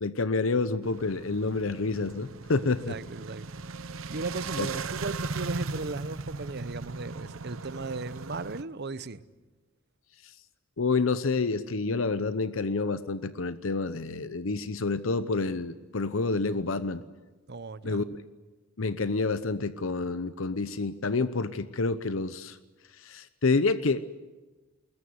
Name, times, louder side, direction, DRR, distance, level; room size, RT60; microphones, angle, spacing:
voice 1, 0.0-3.0 4.6-4.7 10.8-17.0 17.8-18.1 18.8-22.6 23.0-24.0, left 3 dB, 75° left, 0.8 m, -28 dB
sound 1, 0.8-8.6, right 3 dB, 85° right, 0.9 m, -38 dB
voice 2, 2.9-3.5 3.7-3.8 4.1-9.2 17.5-18.1, right 3 dB, 55° right, 0.9 m, -36 dB
21.0 x 20.5 x 9.6 m
head